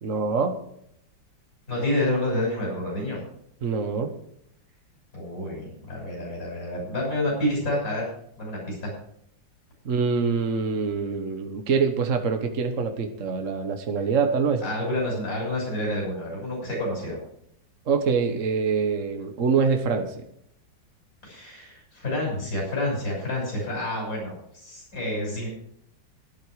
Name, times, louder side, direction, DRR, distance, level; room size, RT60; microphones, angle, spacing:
voice 1, 0.0-0.6 3.6-4.1 9.8-14.6 17.9-20.2, right 5 dB, 45° right, 5 dB, 1.4 m, -25 dB
voice 2, 1.7-3.2 5.1-8.1 8.4-8.9 14.6-17.2 21.2-25.5, left 1 dB, 45° left, -3 dB, 6.9 m, -29 dB
12.5 x 11.5 x 4.9 m, 0.71 s
omnidirectional pair, 2.1 m